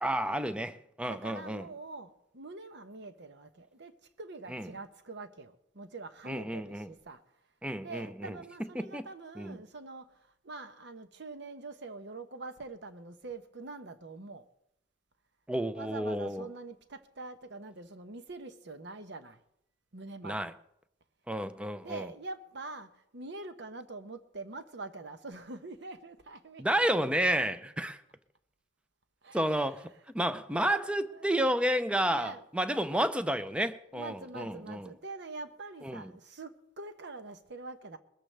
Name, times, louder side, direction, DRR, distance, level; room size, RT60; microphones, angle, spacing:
voice 1, 0.0-1.7 4.5-4.7 6.3-6.9 7.6-8.4 8.8-9.1 9.4-9.6 15.5-16.5 20.2-20.5 21.3-22.1 26.6-28.0 29.3-29.9 30.1-34.9 35.8-36.1, right 1 dB, 5° right, 0.5 m, -31 dB
voice 2, 1.1-7.2 7.8-14.5 15.7-19.4 19.9-20.5 21.8-27.0 29.2-29.8 30.3-31.4 32.1-32.4 33.9-38.0, right 3 dB, 60° right, 1.0 m, -45 dB
21.0 x 13.5 x 3.4 m
head